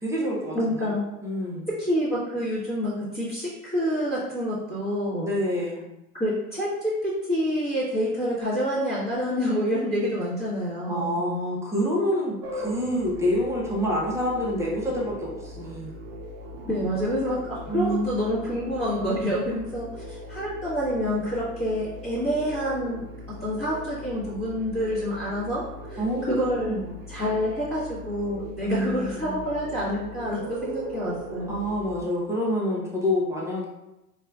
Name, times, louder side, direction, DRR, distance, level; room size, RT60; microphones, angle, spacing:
voice 1, 0.0-1.7 5.2-5.9 10.9-16.0 17.7-18.1 26.0-26.9 28.6-29.4 31.5-33.7, equal, 5° right, -4 dB, 0.8 m, -27 dB
voice 2, 0.5-1.0 1.8-5.3 6.2-11.2 16.6-23.0 23.4-25.6 25.9-26.0 26.3-26.7 27.1-31.6, equal, 15° left, -13 dB, 1.3 m, -27 dB
sound 1, 12.4-32.0, equal, 45° right, 0.7 m, -40 dB
4.1 x 2.5 x 2.4 m, 0.95 s
hypercardioid pair, 90°, 43 cm